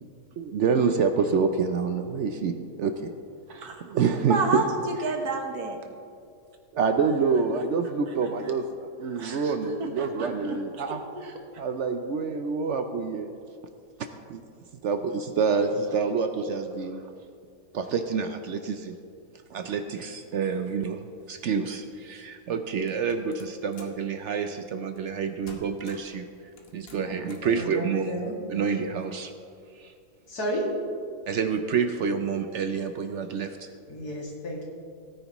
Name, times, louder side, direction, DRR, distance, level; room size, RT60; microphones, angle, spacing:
voice 1, 0.4-3.1 3.8-4.6 6.7-11.0 11.6-13.3 14.3-14.4 14.8-17.1 17.7-19.0 19.5-21.0 21.3-26.3 26.7-28.1 28.5-29.3 29.8-29.9 31.3-33.7, right 5 dB, 65° right, 7 dB, 0.8 m, -27 dB
voice 2, 3.5-3.8 4.3-5.8 8.1-8.5 9.0-11.6, right 3 dB, 80° right, 3 dB, 1.7 m, -32 dB
sound 1, 22.9-24.0 25.0-25.2 25.5-26.2 26.6-27.5, left 3 dB, 45° left, 1.3 m, -49 dB
voice 3, 27.0-28.3 30.3-30.6 33.9-34.6, equal, 85° left, -4 dB, 2.9 m, -33 dB
17.5 x 9.6 x 3.0 m, 2.3 s
omnidirectional pair, 1.6 m